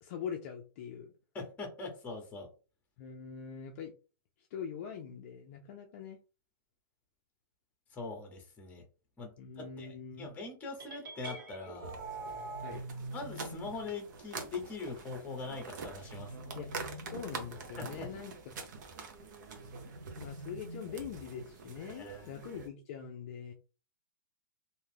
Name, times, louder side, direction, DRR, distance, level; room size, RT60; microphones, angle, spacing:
voice 1, 0.0-1.1 3.0-3.9 4.5-6.2 9.4-10.3 12.6-12.9 16.6-16.7 17.1-18.6 20.2-23.5, left 7 dB, 40° left, 2 dB, 0.5 m, -43 dB
voice 2, 1.3-2.5 7.9-8.8 9.2-11.9 13.1-16.6 17.8-18.1 21.9-22.3, left 3 dB, 15° left, 3 dB, 0.9 m, -42 dB
sound 1, 10.8-12.8, right 3 dB, 75° right, 1.2 m, -43 dB
sound 2, 11.8-22.7, right 4 dB, 60° right, 0.8 m, -46 dB
sound 3, 12.1-14.0 15.8-17.7 19.5-21.4, right 1 dB, 25° right, 1.2 m, -47 dB
2.6 x 2.3 x 3.3 m, 0.34 s
hypercardioid pair, 155°, 11 cm